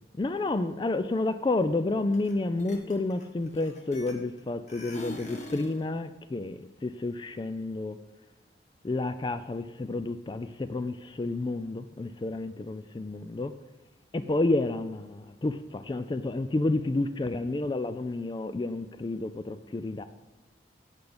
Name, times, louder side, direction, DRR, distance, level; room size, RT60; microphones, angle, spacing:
voice 1, 0.2-8.0 8.8-13.5 14.1-20.0, left 2 dB, 25° left, 11 dB, 0.3 m, -30 dB
sound 1, 2.1-2.3 2.6-4.4 4.7-5.8, left 1 dB, 40° left, 1.5 m, -42 dB
8.2 x 7.9 x 5.1 m, 1.1 s
head